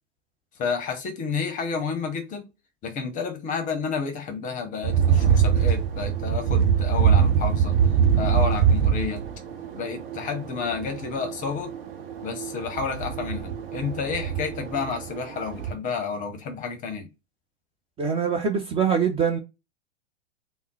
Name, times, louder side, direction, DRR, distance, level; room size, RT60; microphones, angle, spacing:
voice 1, 0.6-2.5 2.8-7.7 8.2-9.2 9.7-11.7 12.2-17.1, left 5 dB, 25° left, 0.8 m, -30 dB
sound 1, 4.8-15.7, right 8 dB, 55° right, 0.8 m, -24 dB
voice 2, 18.0-19.4, right 6 dB, 15° right, 0.5 m, -23 dB
3.5 x 2.1 x 3.9 m
figure-of-eight pair, 105°, 33 cm